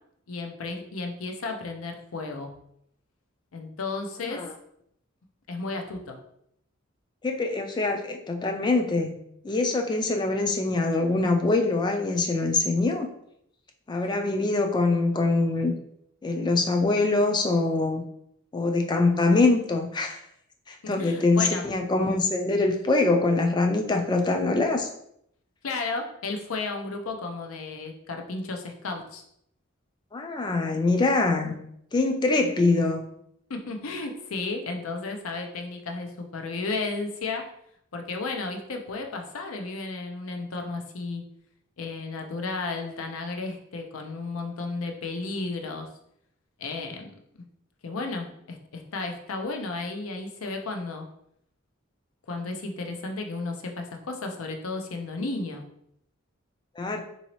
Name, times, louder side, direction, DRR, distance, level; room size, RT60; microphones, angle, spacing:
voice 1, 0.3-2.5 3.5-4.5 5.5-6.2 21.0-21.6 25.6-29.2 33.5-37.5 37.9-41.2 41.8-45.9 46.6-47.1 47.3-47.4 47.8-51.1 52.3-55.6, left 3 dB, 90° left, 4 dB, 0.6 m, -33 dB
voice 2, 7.2-9.2 9.4-13.1 13.9-15.7 16.2-18.0 18.5-20.2 20.7-24.9 30.1-31.6 31.9-33.0 56.8-57.0, left 3 dB, 20° left, 4 dB, 0.3 m, -24 dB
3.9 x 2.7 x 3.0 m, 0.73 s
head